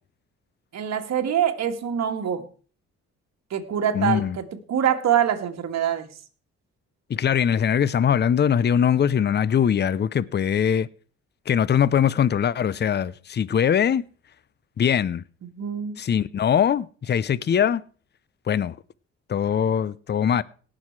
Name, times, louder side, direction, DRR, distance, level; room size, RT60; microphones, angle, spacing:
voice 1, 0.7-2.4 3.5-6.1 15.4-16.0, right 9 dB, 60° right, 2.0 m, -25 dB
voice 2, 3.9-4.4 7.1-10.9 11.5-14.0 14.8-15.2 16.0-17.8 18.5-18.8 19.3-20.4, left 8 dB, 35° left, 0.6 m, -21 dB
18.0 x 6.4 x 4.7 m
cardioid pair, 90°, 30 cm